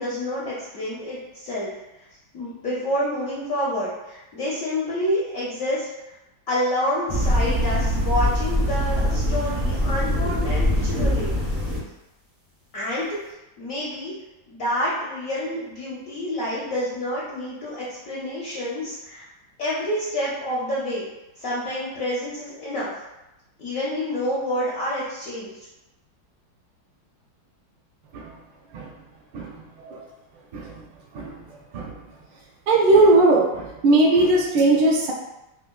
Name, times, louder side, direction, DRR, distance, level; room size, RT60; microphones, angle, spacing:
voice 1, 0.0-1.7 2.3-5.9 6.5-11.3 12.7-13.2 13.6-14.1 14.5-19.3 19.6-21.1 21.4-22.9 23.6-25.5, equal, 70° left, -7 dB, 0.8 m, -28 dB
sound 1, 7.1-11.8, left 1 dB, 30° right, 0.7 m, -23 dB
voice 2, 32.7-35.1, right 2 dB, 75° right, -1 dB, 1.2 m, -17 dB
4.7 x 2.2 x 2.2 m, 0.95 s
omnidirectional pair, 2.1 m